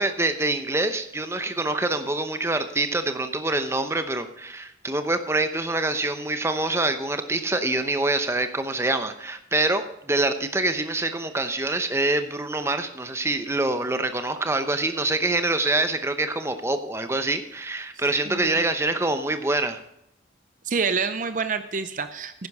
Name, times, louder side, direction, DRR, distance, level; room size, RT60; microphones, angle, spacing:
voice 1, 0.0-19.8, right 2 dB, 15° right, 9 dB, 0.8 m, -25 dB
voice 2, 18.3-18.6 20.6-22.5, right 5 dB, 45° right, 10 dB, 0.6 m, -27 dB
10.5 x 10.5 x 4.8 m, 0.80 s
head